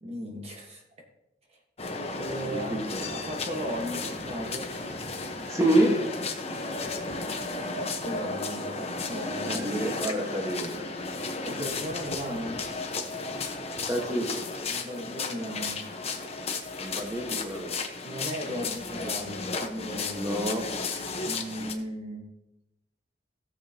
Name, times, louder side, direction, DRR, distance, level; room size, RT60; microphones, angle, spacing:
voice 1, 0.0-0.8 2.1-2.8 3.1-4.7 7.6-9.7 11.4-12.6 14.7-15.9 18.0-20.3 21.2-22.3, equal, 35° right, 1 dB, 1.4 m, -36 dB
sound 1, 1.8-21.7, left 3 dB, 35° left, 1.1 m, -34 dB
voice 2, 2.5-3.1 5.5-6.0 9.4-10.9 13.9-14.4 16.8-17.8 20.1-20.7, right 1 dB, 15° right, 1 dB, 1.4 m, -28 dB
16.0 x 7.3 x 2.9 m, 0.89 s
head